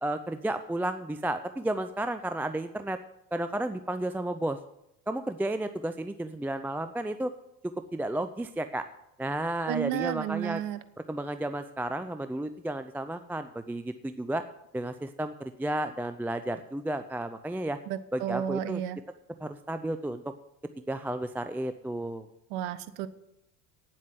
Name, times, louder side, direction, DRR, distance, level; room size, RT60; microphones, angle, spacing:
voice 1, 0.0-3.0 3.3-4.6 5.1-7.3 7.9-8.9 9.2-10.6 11.1-14.4 14.7-17.8 18.1-18.8 19.4-20.3 20.9-22.3, right 1 dB, 5° right, 9 dB, 0.4 m, -32 dB
voice 2, 9.7-10.8 17.9-19.0 22.5-23.1, right 11 dB, 65° right, 13 dB, 1.1 m, -32 dB
9.3 x 7.9 x 7.7 m, 0.82 s
hypercardioid pair, 75°, 47 cm